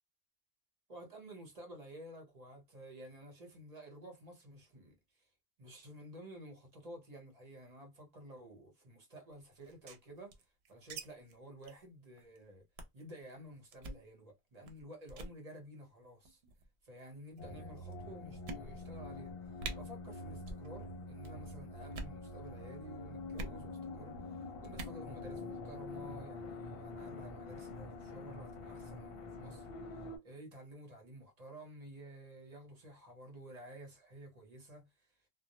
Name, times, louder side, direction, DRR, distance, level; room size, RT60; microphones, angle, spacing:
voice 1, 0.9-5.3 5.6-10.4 10.7-12.7 12.9-16.4 16.8-24.2 24.6-29.7 29.9-35.1, right 1 dB, 40° right, 0.9 m, -52 dB
sound 1, 9.6-11.0 11.3-11.4 11.6-11.8 12.2-12.4 12.8-13.0 13.7-14.0 14.6-14.8 15.1-15.4 16.2-16.7 17.4-17.5 17.9-18.0 18.4-19.0 19.3-19.4 19.6-19.8 20.4-20.7 20.9-21.3 21.8-22.2 23.3-23.6 24.6-25.0, right 2 dB, 75° right, 0.8 m, -44 dB
sound 2, 17.4-30.2, left 2 dB, 65° left, 0.8 m, -46 dB
2.2 x 2.0 x 2.8 m
omnidirectional pair, 1.1 m